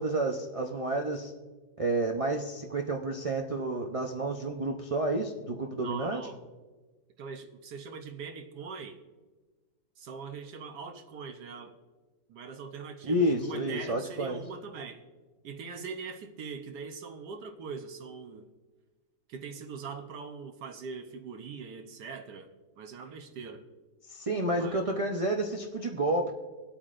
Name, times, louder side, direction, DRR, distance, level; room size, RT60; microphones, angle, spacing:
voice 1, 0.0-1.3 1.8-6.2 13.0-14.4 24.1-26.3, right 1 dB, 55° right, 2 dB, 0.3 m, -30 dB
voice 2, 5.7-6.4 7.2-9.0 10.0-11.8 12.3-15.0 15.4-18.5 19.3-23.7 24.5-24.8, right 5 dB, 70° right, 5 dB, 1.4 m, -42 dB
23.5 x 8.7 x 2.5 m, 1.3 s
omnidirectional pair, 1.8 m